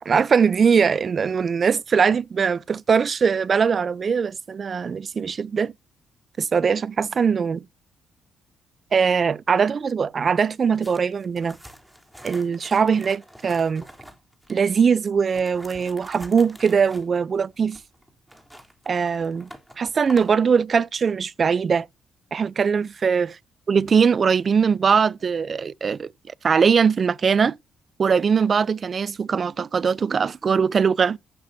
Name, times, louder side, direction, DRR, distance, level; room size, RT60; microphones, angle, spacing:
voice 1, 0.0-5.7 6.4-7.6 8.9-11.6 12.2-13.8 14.5-17.8 18.9-19.5 19.8-21.9 22.3-23.3 23.7-26.1 26.4-27.6 28.0-31.2, right 6 dB, 45° right, 0.6 m, -21 dB
sound 1, 10.7-14.7 15.2-20.4, equal, 5° right, 3.7 m, -45 dB
15.0 x 11.5 x 2.8 m
cardioid pair, 90°, 0 cm